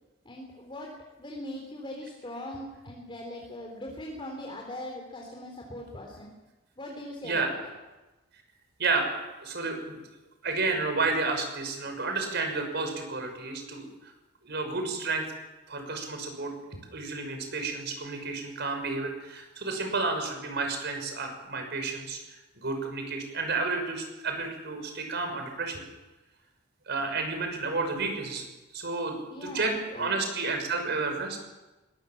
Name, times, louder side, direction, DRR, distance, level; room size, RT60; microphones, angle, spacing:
voice 1, 0.3-0.9 1.2-6.3 6.8-7.7 29.3-30.2, left 1 dB, 25° left, -1 dB, 3.7 m, -40 dB
voice 2, 8.8-10.0 10.4-14.1 14.4-15.3 15.7-16.5 16.9-25.8 26.9-28.4 28.7-31.4, right 3 dB, 60° right, 5 dB, 5.9 m, -31 dB
23.0 x 20.5 x 7.4 m, 1.1 s
head